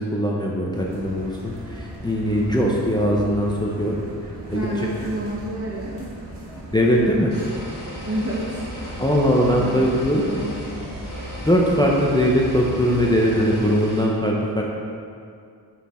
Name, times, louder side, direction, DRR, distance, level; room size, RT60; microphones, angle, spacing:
voice 1, 0.0-3.9 4.5-4.6 6.7-7.3 9.0-10.2 11.4-14.6, equal, 10° left, -3 dB, 0.6 m, -20 dB
sound 1, 0.7-13.7, right 1 dB, 80° right, 1.6 m, -37 dB
voice 2, 4.5-6.1 7.3-7.4 8.0-8.6 9.6-10.8, right 1 dB, 35° right, -5 dB, 0.8 m, -29 dB
sound 2, 7.3-14.0, left 1 dB, 50° left, 1.7 m, -38 dB
5.9 x 5.9 x 4.3 m, 2.3 s
wide cardioid pair, 150°, 41 cm